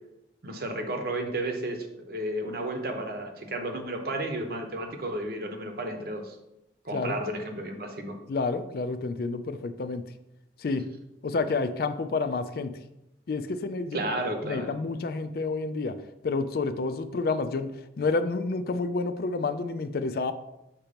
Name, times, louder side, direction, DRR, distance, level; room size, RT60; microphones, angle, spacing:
voice 1, 0.4-6.4 6.8-8.2 13.9-14.8, right 1 dB, 55° right, 4 dB, 0.9 m, -32 dB
voice 2, 8.3-10.0 10.6-10.8 11.2-12.7 13.3-14.0 14.4-15.9 16.2-20.3, left 3 dB, 55° left, 10 dB, 0.4 m, -29 dB
6.7 x 3.0 x 5.1 m, 0.89 s
head